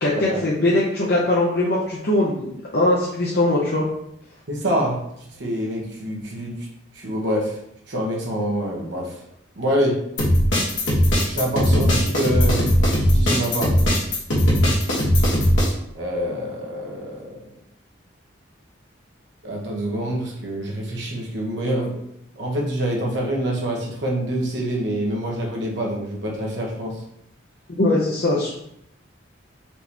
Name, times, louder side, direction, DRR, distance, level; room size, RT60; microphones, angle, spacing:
voice 1, 0.0-3.8 27.8-28.6, left 1 dB, 55° left, -6 dB, 0.7 m, -21 dB
voice 2, 4.5-5.0 5.4-6.7 6.9-7.6 7.9-9.1 9.6-10.0 11.2-13.7 15.9-17.4 19.4-22.0 22.4-27.0, equal, 60° right, -2 dB, 1.1 m, -26 dB
sound 1, 10.2-15.7, equal, 70° left, 1.3 m, -18 dB
4.5 x 2.9 x 3.4 m, 0.76 s
head